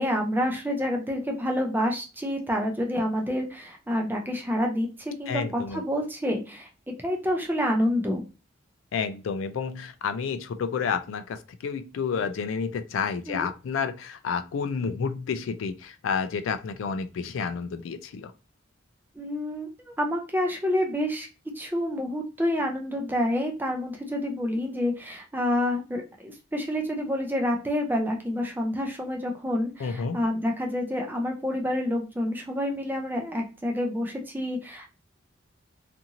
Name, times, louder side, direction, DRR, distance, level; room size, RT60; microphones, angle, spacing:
voice 1, 0.0-6.7 7.0-8.2 13.3-13.5 19.1-21.3 21.6-34.9, left 1 dB, 10° right, 2 dB, 0.5 m, -28 dB
voice 2, 5.3-5.8 8.9-18.3 29.8-30.2, left 5 dB, 85° left, 10 dB, 0.3 m, -30 dB
2.6 x 2.5 x 2.8 m, 0.31 s
head